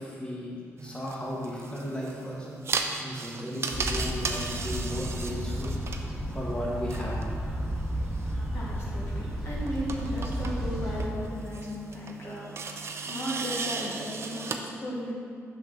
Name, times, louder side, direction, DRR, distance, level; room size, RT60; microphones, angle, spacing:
voice 1, 0.0-2.5 3.0-5.7 6.3-7.4, left 1 dB, 20° left, -5 dB, 1.5 m, -35 dB
sound 1, 0.8-14.6, right 4 dB, 55° right, 0.5 m, -37 dB
sound 2, 3.7-11.1, equal, 10° right, 1.3 m, -33 dB
voice 2, 8.2-15.1, equal, 50° left, -5 dB, 1.4 m, -36 dB
6.0 x 6.0 x 3.9 m, 2.2 s
cardioid pair, 85°, 5 cm